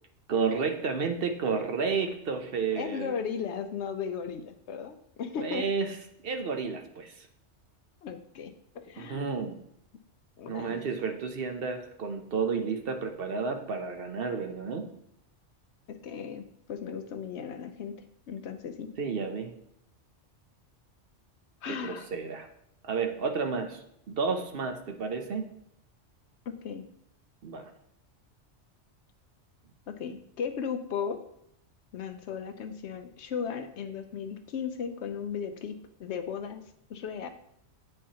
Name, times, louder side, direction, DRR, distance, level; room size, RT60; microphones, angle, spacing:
voice 1, 0.3-3.1 5.4-5.9 6.2-7.3 9.0-9.6 10.5-14.9 19.0-19.5 21.6-22.5 22.8-25.4 27.4-27.7, right 5 dB, 55° right, 5 dB, 0.9 m, -31 dB
voice 2, 2.8-5.7 8.0-9.3 10.4-10.8 15.9-16.4 16.7-17.9 18.3-18.9 21.6-22.1 26.5-26.9 29.9-31.2 31.9-36.6 36.9-37.3, left 7 dB, 75° left, 8 dB, 0.9 m, -36 dB
8.5 x 5.5 x 2.8 m, 0.76 s
omnidirectional pair, 1.2 m